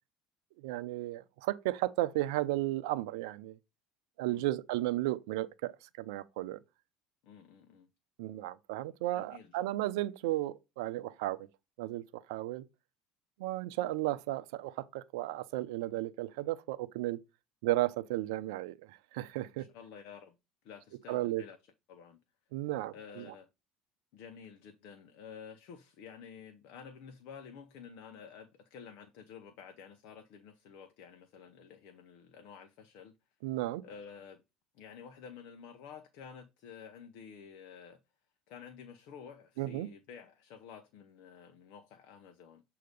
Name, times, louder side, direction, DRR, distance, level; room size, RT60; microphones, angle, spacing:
voice 1, 0.6-3.6 4.2-5.7 6.0-6.6 8.2-11.5 11.8-12.6 13.4-17.2 17.6-19.7 21.1-21.4 22.5-23.3 33.4-33.8 39.6-39.9, right 16 dB, 80° right, 0.6 m, -34 dB
voice 2, 4.2-4.6 7.2-7.9 9.1-9.5 19.5-20.4 20.6-21.6 21.9-22.2 22.9-23.5 24.1-33.1 33.8-34.4 34.7-38.0 38.5-42.6, left 7 dB, 70° left, 0.9 m, -51 dB
7.8 x 2.8 x 5.2 m
supercardioid pair, 85°, 3 cm